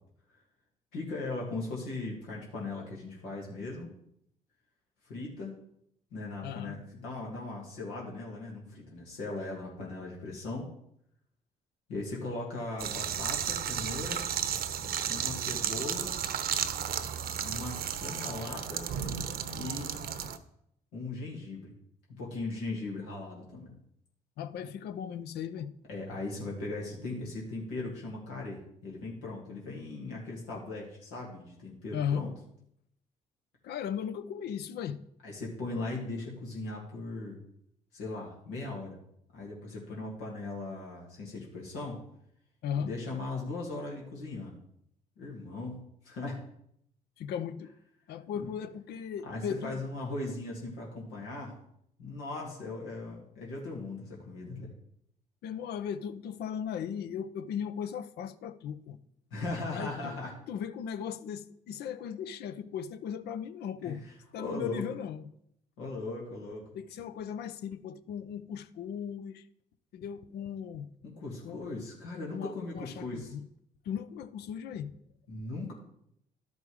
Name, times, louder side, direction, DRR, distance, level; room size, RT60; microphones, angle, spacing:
voice 1, 0.9-3.9 5.1-5.5 6.1-10.7 11.9-14.3 15.1-16.1 17.4-18.9 19.5-19.9 20.9-21.7 22.1-23.7 25.9-32.3 35.2-37.4 37.9-39.0 39.3-42.0 42.8-44.6 45.2-46.4 48.3-48.5 49.2-51.5 52.0-54.7 59.3-60.3 63.8-64.0 64.4-64.8 65.8-66.6 71.0-73.3 75.3-75.7, left 2 dB, 90° left, 2.1 m, -38 dB
voice 2, 6.4-6.8 24.4-25.7 31.9-32.3 33.6-35.0 42.6-43.0 47.2-47.7 48.1-49.8 55.4-59.0 59.7-60.2 60.5-64.0 64.3-65.3 66.7-69.4 69.9-70.9 71.4-71.8 72.3-73.5 73.8-74.9, left 8 dB, 70° left, 0.7 m, -37 dB
sound 1, 12.8-20.4, right 8 dB, 65° right, 0.8 m, -33 dB
12.0 x 5.4 x 4.7 m
supercardioid pair, 60°, 17 cm